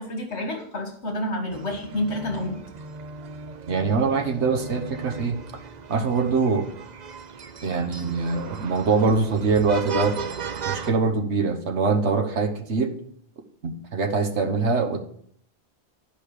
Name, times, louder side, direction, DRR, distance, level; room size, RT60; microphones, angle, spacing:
voice 1, 0.0-2.6, left 1 dB, 75° left, 3 dB, 2.0 m, -29 dB
sound 1, 1.5-10.9, right 5 dB, 45° right, 0.7 m, -36 dB
voice 2, 3.7-5.4 5.9-6.7 7.6-10.2 10.6-12.9 13.6-15.0, right 4 dB, 80° right, 4 dB, 1.4 m, -23 dB
10.5 x 5.4 x 6.6 m, 0.65 s
omnidirectional pair, 1.1 m